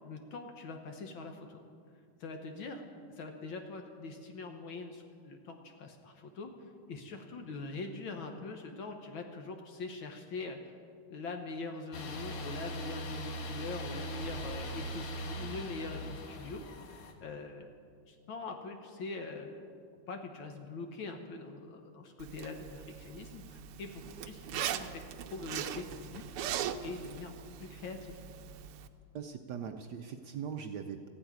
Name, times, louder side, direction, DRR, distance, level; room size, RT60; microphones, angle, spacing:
voice 1, 0.0-1.6 2.2-2.9 3.2-6.5 6.9-10.6 11.1-16.8 17.2-17.7 18.1-19.7 20.1-25.0 25.3-26.2 26.8-28.3, left 3 dB, 65° left, 4 dB, 1.7 m, -43 dB
sound 1, 11.9-17.1, equal, 90° left, 2.3 m, -41 dB
Zipper (clothing), 22.2-28.9, right 10 dB, 85° right, 1.6 m, -40 dB
voice 2, 29.1-31.1, right 7 dB, 70° right, 6 dB, 1.0 m, -40 dB
15.0 x 8.7 x 9.4 m, 2.2 s
omnidirectional pair, 2.4 m